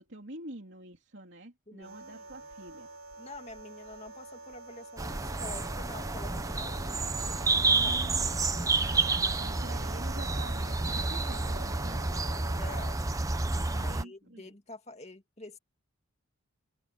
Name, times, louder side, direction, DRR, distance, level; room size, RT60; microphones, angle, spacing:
voice 1, 0.0-2.9 7.7-8.3 8.7-12.0 13.7-14.5, right 1 dB, 55° right, 3.3 m, -47 dB
voice 2, 1.7-2.5 3.2-8.2 12.5-13.0 13.7-15.6, left 2 dB, 30° left, 2.2 m, -48 dB
sound 1, 1.8-13.0, right 3 dB, 80° right, 7.5 m, -48 dB
sound 2, 5.0-14.0, right 3 dB, 15° right, 0.7 m, -30 dB
open air
head